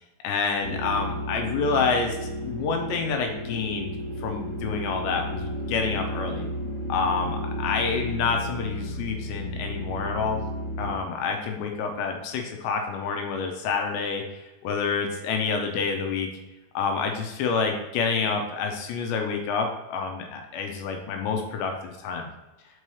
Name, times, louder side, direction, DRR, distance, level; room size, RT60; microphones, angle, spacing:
voice 1, 0.2-2.2 2.4-3.9 4.2-6.5 6.9-10.4 10.8-14.2 14.6-16.3 16.7-22.3, left 5 dB, 80° left, 4 dB, 2.8 m, -28 dB
sound 1, 0.6-10.9, equal, 60° left, 2.2 m, -33 dB
5.5 x 5.4 x 3.2 m, 1.1 s
omnidirectional pair, 5.1 m